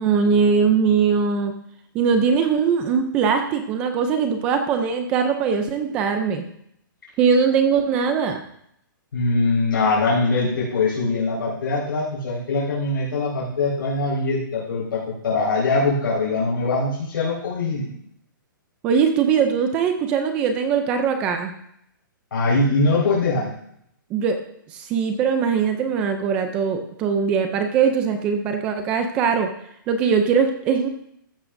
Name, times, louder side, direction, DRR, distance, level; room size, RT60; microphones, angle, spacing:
voice 1, 0.0-1.5 1.9-6.5 7.2-8.4 18.8-21.5 24.1-24.4 24.7-29.5 29.9-30.9, right 6 dB, 10° right, 6 dB, 0.4 m, -21 dB
voice 2, 9.1-17.9 22.3-23.5, left 3 dB, 75° left, -7 dB, 4.6 m, -22 dB
14.5 x 11.0 x 2.6 m, 0.72 s
hypercardioid pair, 180°, 11 cm